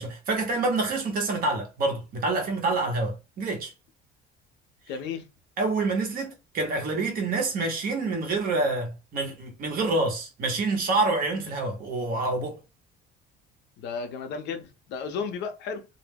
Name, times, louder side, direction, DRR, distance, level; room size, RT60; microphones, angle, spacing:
voice 1, 0.0-3.7 5.6-12.6, right 3 dB, 45° right, 0.8 m, -27 dB
voice 2, 4.9-5.3 13.8-15.9, left 5 dB, 60° left, 0.5 m, -33 dB
2.1 x 2.0 x 3.3 m
cardioid pair, 160°, 21 cm